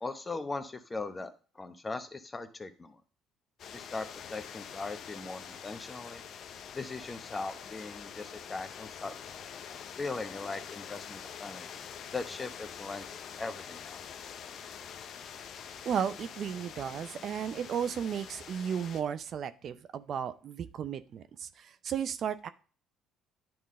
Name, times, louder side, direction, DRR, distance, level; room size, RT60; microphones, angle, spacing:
voice 1, 0.0-3.0 3.7-6.2 6.7-9.1 10.0-14.0, left 3 dB, 25° left, 9 dB, 0.9 m, -39 dB
sound 1, 3.6-19.0, left 8 dB, 60° left, 0.6 m, -45 dB
voice 2, 15.9-22.5, right 8 dB, 55° right, 12 dB, 0.5 m, -34 dB
10.5 x 3.7 x 3.7 m, 0.39 s
supercardioid pair, 70°, 0 cm